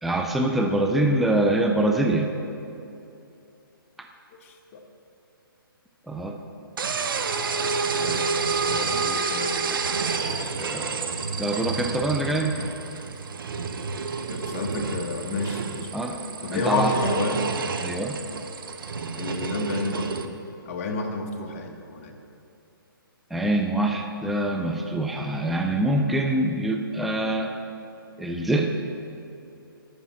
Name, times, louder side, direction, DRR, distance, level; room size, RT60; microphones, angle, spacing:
voice 1, 0.0-2.3 6.1-6.4 10.4-11.1 11.4-12.5 15.9-16.2 16.5-17.0 17.8-18.2 23.3-27.5 28.2-28.7, right 1 dB, ahead, 3 dB, 0.3 m, -24 dB
voice 2, 4.4-4.8 8.0-9.8 14.3-17.5 19.2-20.1 20.6-22.2 25.7-25.9, left 3 dB, 35° left, 3 dB, 1.2 m, -31 dB
sound 1, 6.8-20.2, right 5 dB, 65° right, 0.8 m, -29 dB
11.5 x 5.4 x 7.4 m, 2.7 s
hypercardioid pair, 145°, 12 cm